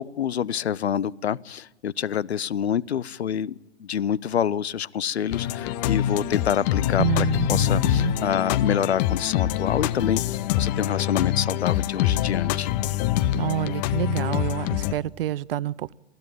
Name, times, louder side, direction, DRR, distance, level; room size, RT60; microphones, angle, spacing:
voice 1, 0.0-3.5 3.8-12.7, left 9 dB, 70° left, 23 dB, 0.7 m, -27 dB
sound 1, 5.3-14.9, left 12 dB, 40° left, 0.9 m, -25 dB
voice 2, 7.0-8.1 13.3-15.9, right 13 dB, 55° right, 22 dB, 0.6 m, -28 dB
21.0 x 15.5 x 9.0 m, 1.0 s
figure-of-eight pair, 100°, 33 cm